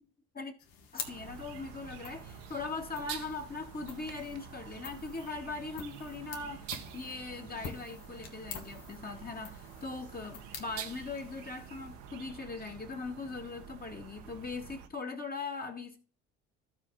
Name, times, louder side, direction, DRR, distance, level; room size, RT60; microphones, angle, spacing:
sound 1, 0.6-12.3, left 7 dB, 70° left, 1.8 m, -48 dB
voice 1, 0.9-16.0, left 4 dB, 25° left, 1.6 m, -40 dB
sound 2, 1.0-14.9, right 8 dB, 70° right, 1.3 m, -47 dB
14.5 x 4.8 x 3.9 m
hypercardioid pair, 60°, 37 cm